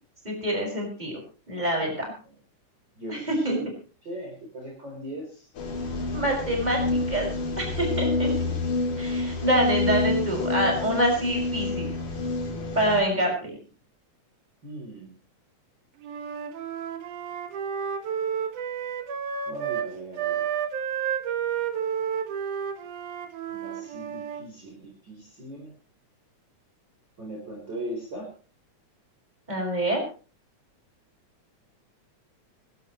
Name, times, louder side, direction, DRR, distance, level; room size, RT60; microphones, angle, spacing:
voice 1, 0.2-1.2 1.5-2.0 3.1-3.6 6.1-6.8 7.1-7.3 7.6-8.3 9.0-11.9 12.7-13.5 29.5-30.0, right 1 dB, 15° right, 1 dB, 6.1 m, -26 dB
voice 2, 1.6-2.3 3.0-3.6 4.0-5.5 10.7-10.8 13.1-13.5 14.6-15.2 19.5-20.5 23.5-25.7 27.2-28.3, right 1 dB, 35° right, -1 dB, 4.7 m, -39 dB
sound 1, 5.6-13.0, left 3 dB, 80° left, 4.7 m, -28 dB
Wind instrument woodwind instrument, 16.0-19.9 20.1-24.5, right 8 dB, 90° right, 2.9 m, -31 dB
25.5 x 12.5 x 3.1 m, 0.36 s
omnidirectional pair, 3.4 m